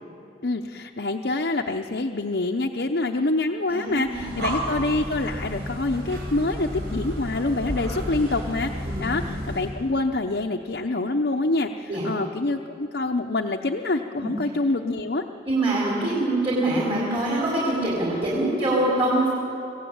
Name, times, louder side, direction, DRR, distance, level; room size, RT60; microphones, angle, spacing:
voice 1, 0.4-15.3 16.8-17.0, left 2 dB, 65° left, 3 dB, 0.8 m, -26 dB
voice 2, 3.7-4.3 8.9-9.3 11.9-12.0 14.2-14.3 15.5-19.3, right 1 dB, 30° right, -6 dB, 4.2 m, -24 dB
Breathing, 4.0-9.8, equal, 65° right, 5.2 m, -32 dB
25.0 x 16.0 x 8.8 m, 2.9 s
head